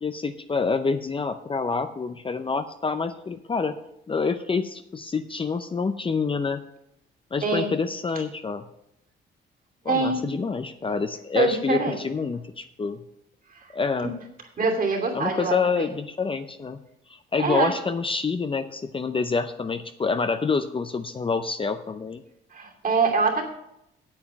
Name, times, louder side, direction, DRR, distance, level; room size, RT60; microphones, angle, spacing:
voice 1, 0.0-3.8 4.1-6.6 7.3-8.6 9.8-13.0 13.7-14.2 15.1-16.8 17.1-22.2, left 4 dB, 25° left, 9 dB, 0.6 m, -27 dB
voice 2, 7.4-7.7 9.9-10.2 11.3-12.0 14.6-15.9 17.4-17.7 22.5-23.5, right 4 dB, 45° right, 1 dB, 2.7 m, -24 dB
8.8 x 7.9 x 6.1 m, 0.81 s
cardioid pair, 90°, 20 cm